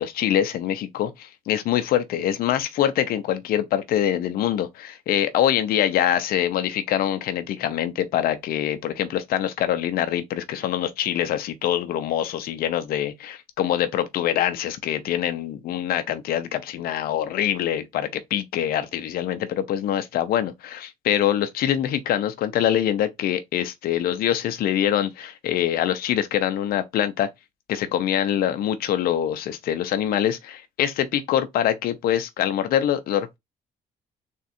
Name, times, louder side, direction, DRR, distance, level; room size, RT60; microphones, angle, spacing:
voice 1, 0.0-27.3 27.7-33.4, left 11 dB, 75° left, 0.7 m, -24 dB
3.6 x 2.5 x 4.2 m
cardioid pair, 100°, 15 cm